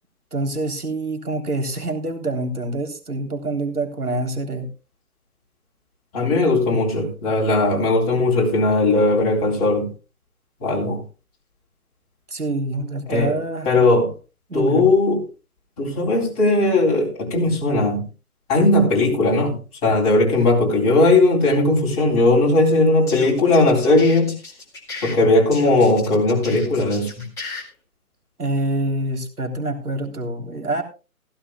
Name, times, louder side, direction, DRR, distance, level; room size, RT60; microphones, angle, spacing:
voice 1, 0.3-4.7 12.3-13.7 14.5-14.8 28.4-30.8, right 2 dB, 85° right, 3.5 m, -26 dB
voice 2, 6.1-9.9 10.6-11.0 13.1-13.3 13.6-14.1 14.5-15.2 15.8-18.0 18.5-19.6 19.8-24.3 25.0-27.3, left 2 dB, 25° left, 3.8 m, -18 dB
sound 1, 22.9-25.2 25.5-27.6, left 3 dB, 5° left, 2.2 m, -35 dB
16.0 x 15.5 x 2.3 m
figure-of-eight pair, 155°, 44 cm